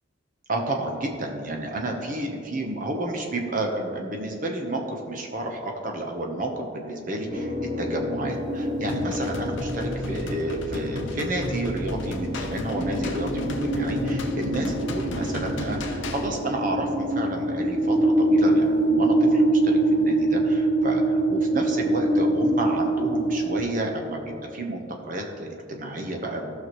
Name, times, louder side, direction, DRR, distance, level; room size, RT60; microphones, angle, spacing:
voice 1, 0.5-26.6, right 1 dB, 45° right, 2 dB, 1.0 m, -31 dB
sound 1, 7.3-23.6, right 1 dB, 20° right, 1.0 m, -25 dB
sound 2, 8.9-16.3, left 1 dB, 75° left, 0.8 m, -34 dB
14.5 x 6.1 x 3.1 m, 2.5 s
head